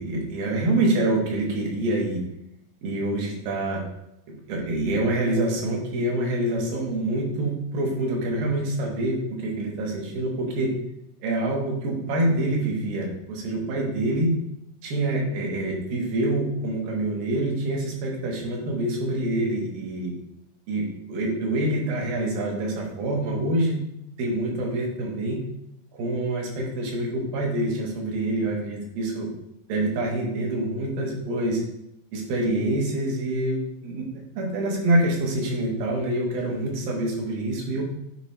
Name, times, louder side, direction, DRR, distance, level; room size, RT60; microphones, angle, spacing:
voice 1, 0.0-2.2 2.8-3.8 4.5-10.7 11.2-14.3 14.8-20.1 20.7-23.8 24.2-25.4 25.9-29.3 29.7-31.6 32.1-37.8, right 1 dB, 85° right, -1 dB, 3.2 m, -26 dB
9.4 x 3.3 x 4.2 m, 0.81 s
omnidirectional pair, 3.9 m